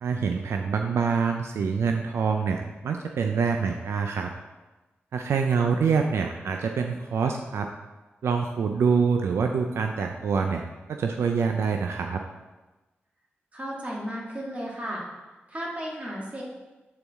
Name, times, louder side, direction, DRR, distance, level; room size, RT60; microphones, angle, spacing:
voice 1, 0.0-4.3 5.1-7.7 8.2-12.2, right 5 dB, 85° right, 4 dB, 0.4 m, -26 dB
voice 2, 13.5-15.0 15.5-16.4, equal, 35° right, -4 dB, 2.2 m, -34 dB
8.7 x 4.0 x 3.5 m, 1.1 s
cardioid pair, 55°, 4 cm